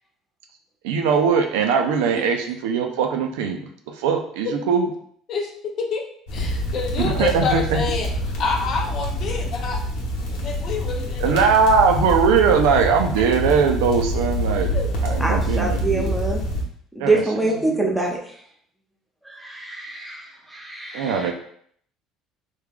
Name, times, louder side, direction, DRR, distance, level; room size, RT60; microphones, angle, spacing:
voice 1, 0.9-3.6 4.0-4.9 7.0-7.8 11.2-14.8 15.0-16.1 17.0-17.9 20.9-21.3, right 6 dB, 90° right, 4 dB, 0.5 m, -20 dB
voice 2, 5.3-6.0 6.3-8.1 8.4-9.8 10.3-11.5 14.7-15.2, left 4 dB, 55° left, 3 dB, 0.6 m, -28 dB
sound 1, 6.3-16.6, equal, 80° left, 1.0 m, -26 dB
voice 3, 15.2-16.4 17.0-18.1 19.3-21.3, right 2 dB, 5° right, -1 dB, 0.9 m, -25 dB
3.4 x 2.3 x 3.5 m, 0.63 s
supercardioid pair, 100°, 0 cm